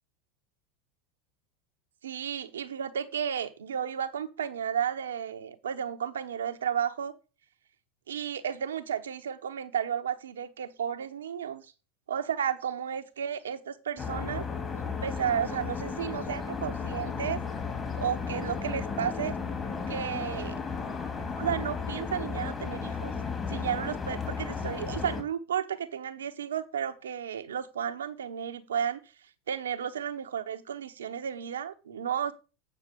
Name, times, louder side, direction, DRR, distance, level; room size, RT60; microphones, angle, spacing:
voice 1, 2.0-7.1 8.1-11.7 12.1-14.4 15.0-17.4 18.0-19.4 19.9-20.6 21.4-23.1 23.5-32.3, right 8 dB, 90° right, 9 dB, 1.0 m, -33 dB
sound 1, 14.0-25.2, left 5 dB, 25° left, 2.4 m, -34 dB
8.9 x 5.8 x 5.2 m, 0.32 s
hypercardioid pair, 90°, 0 cm